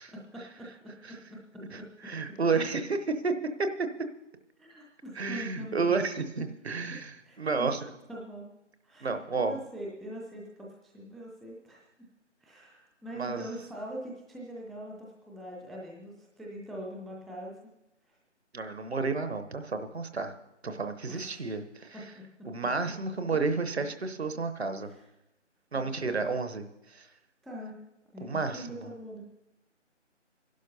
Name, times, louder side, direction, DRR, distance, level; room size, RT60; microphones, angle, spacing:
voice 1, 0.1-1.9 4.6-6.0 6.9-7.7 8.1-8.5 8.8-11.9 12.4-17.5 21.1-21.5 21.9-22.3 24.8-25.0 25.7-26.2 27.4-27.7 28.1-29.2, right 1 dB, ahead, -3 dB, 0.4 m, -43 dB
voice 2, 1.7-3.0 3.2-3.3 3.6-3.9 5.2-7.9 9.0-9.6 13.2-13.4 18.5-20.3 20.6-22.0 22.4-24.9 25.7-27.1 28.2-28.9, right 4 dB, 60° right, 9 dB, 1.0 m, -31 dB
25.0 x 11.5 x 2.7 m, 0.89 s
figure-of-eight pair, 155°, 36 cm